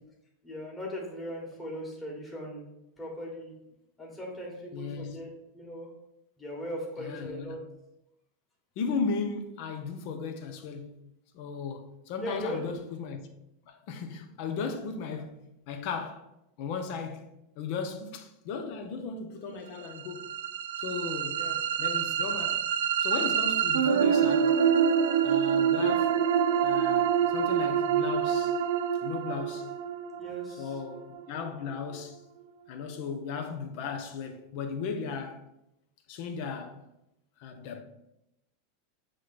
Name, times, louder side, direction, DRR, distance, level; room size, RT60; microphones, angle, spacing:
voice 1, 0.4-2.7 3.0-3.5 4.0-5.9 6.4-7.6 12.2-12.8 21.3-21.6 30.2-30.8, equal, 10° left, 1.7 m, -38 dB
voice 2, 4.7-5.2 7.0-7.6 8.8-11.0 11.3-13.2 13.7-16.3 16.6-17.3 17.6-20.3 20.8-21.5 21.8-22.6 23.0-24.6 25.2-26.2 26.6-28.6 29.0-29.7 30.6-32.2 32.7-35.4 36.1-36.8 37.4-37.8, left 5 dB, 50° left, 0.8 m, -36 dB
sound 1, 19.9-31.9, right 8 dB, 85° right, 0.5 m, -26 dB
7.5 x 3.2 x 4.2 m
supercardioid pair, 150°, 0 cm